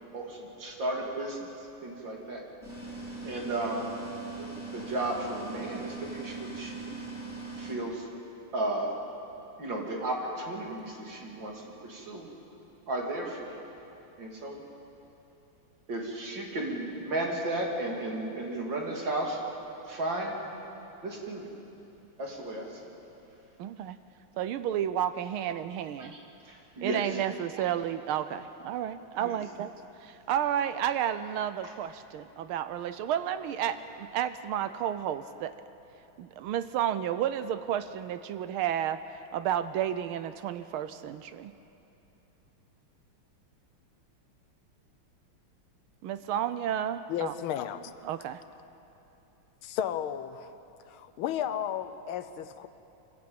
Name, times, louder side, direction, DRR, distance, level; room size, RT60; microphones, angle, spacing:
voice 1, 0.1-1.5 1.8-2.4 3.2-3.9 4.4-4.5 4.7-7.0 7.6-8.1 8.5-8.9 9.6-11.5 11.8-12.3 12.9-13.6 14.2-14.6 15.9-19.4 19.9-20.4 21.0-21.5 22.2-22.9 26.0-26.2 26.5-27.0 27.6-27.7 29.2-29.3, right 2 dB, 60° right, -1 dB, 3.4 m, -34 dB
sound 1, 2.6-7.7, right 3 dB, 5° right, 5.6 m, -40 dB
voice 2, 23.6-24.0 24.4-26.2 26.8-29.7 30.0-35.5 36.2-39.0 39.3-41.5 46.0-47.3 48.0-48.4, right 10 dB, 80° right, 12 dB, 1.5 m, -31 dB
voice 3, 47.1-47.9 49.6-50.5 50.9-52.7, left 10 dB, 80° left, 12 dB, 1.6 m, -33 dB
25.0 x 15.0 x 8.7 m, 2.9 s
omnidirectional pair, 2.3 m